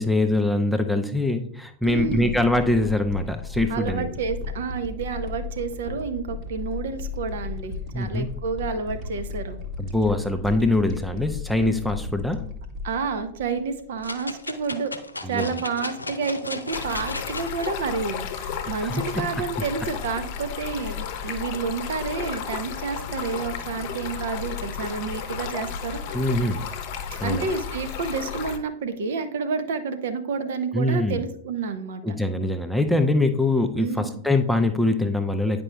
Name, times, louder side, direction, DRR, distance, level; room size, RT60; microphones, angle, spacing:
voice 1, 0.0-4.1 7.9-8.3 9.8-12.4 15.2-15.5 18.6-19.0 21.3-21.4 26.1-26.7 27.2-27.5 30.7-31.2 32.0-35.6, left 2 dB, ahead, 6 dB, 0.6 m, -23 dB
sound 1, 1.8-14.1 14.6-14.7, left 4 dB, 40° right, 1.2 m, -35 dB
voice 2, 1.8-2.4 3.7-9.6 12.8-14.9 15.2-26.2 27.2-32.2 33.8-34.2, right 5 dB, 60° right, 9 dB, 0.7 m, -30 dB
sound 2, 14.0-17.7 18.2-18.3, left 2 dB, 80° left, 0.5 m, -35 dB
Stream, 16.7-28.6, left 7 dB, 45° left, 0.8 m, -33 dB
9.7 x 5.2 x 2.3 m, 0.63 s
figure-of-eight pair, 90°, 0 cm